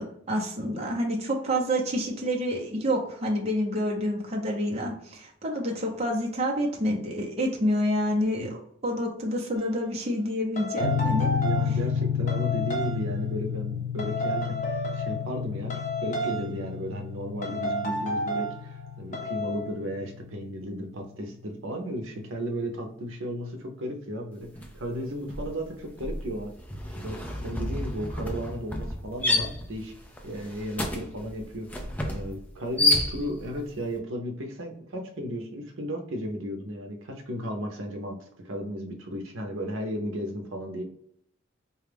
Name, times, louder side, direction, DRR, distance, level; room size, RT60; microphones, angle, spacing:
voice 1, 0.0-11.3, equal, 30° right, -1 dB, 0.7 m, -28 dB
sound 1, 9.6-9.7 10.6-11.8 12.3-13.0 14.0-15.4 15.7-16.6 17.4-18.6 19.1-19.7, equal, 40° left, 0.7 m, -31 dB
sound 2, 10.8-21.0, left 8 dB, 70° left, 0.4 m, -31 dB
voice 2, 11.4-15.7 16.0-24.5 24.7-26.5 27.0-29.9 30.2-31.7 32.1-38.2 38.4-40.8, equal, 85° right, 2 dB, 0.6 m, -34 dB
sound 3, 24.6-24.8 25.1-33.6, left 2 dB, 10° left, 0.4 m, -30 dB
4.3 x 2.3 x 3.4 m, 0.70 s
head